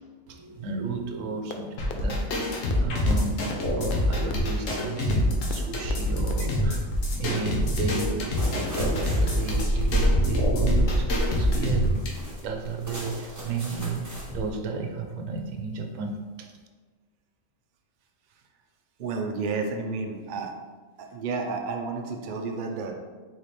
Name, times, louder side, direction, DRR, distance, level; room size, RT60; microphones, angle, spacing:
voice 1, 0.3-6.9 7.2-16.5, right 4 dB, 75° right, 4 dB, 1.0 m, -33 dB
sound 1, 1.5-1.6 1.9-2.0 2.3-2.4 2.7-2.8 3.1-3.2 3.5-3.6 3.9-4.0 4.3-4.4 4.7-4.8 5.1-5.2 5.5-5.6 5.9-6.0 6.3-6.4, left 8 dB, 60° left, 0.5 m, -35 dB
sound 2, 1.8-12.1, left 1 dB, 75° left, 1.3 m, -26 dB
sound 3, 5.7-6.3 6.7-14.5, right 1 dB, 15° right, 1.0 m, -29 dB
voice 2, 19.0-20.5 21.0-22.9, right 4 dB, 60° right, 3 dB, 0.5 m, -31 dB
3.9 x 3.2 x 4.1 m, 1.4 s
omnidirectional pair, 1.3 m